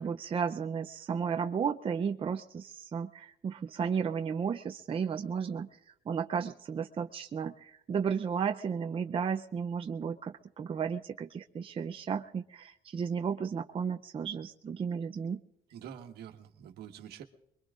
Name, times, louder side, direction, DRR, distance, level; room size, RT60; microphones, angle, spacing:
voice 1, 0.0-5.7 6.1-15.4, right 6 dB, 30° right, 6 dB, 0.6 m, -33 dB
voice 2, 15.7-17.2, right 9 dB, 75° right, 6 dB, 1.5 m, -46 dB
24.0 x 22.5 x 2.5 m, 0.79 s
cardioid pair, 110°, 17 cm